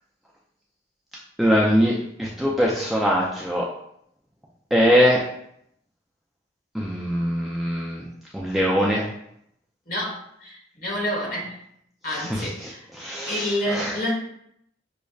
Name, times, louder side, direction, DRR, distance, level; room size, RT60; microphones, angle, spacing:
voice 1, 1.4-1.9 2.2-3.7 4.7-5.2 6.7-8.0 8.3-9.1 12.1-12.7 13.0-14.0, equal, ahead, -5 dB, 0.4 m, -22 dB
voice 2, 9.9-11.6 12.0-12.9 13.3-14.1, equal, 50° left, -3 dB, 1.2 m, -28 dB
6.3 x 2.1 x 2.3 m, 0.72 s
head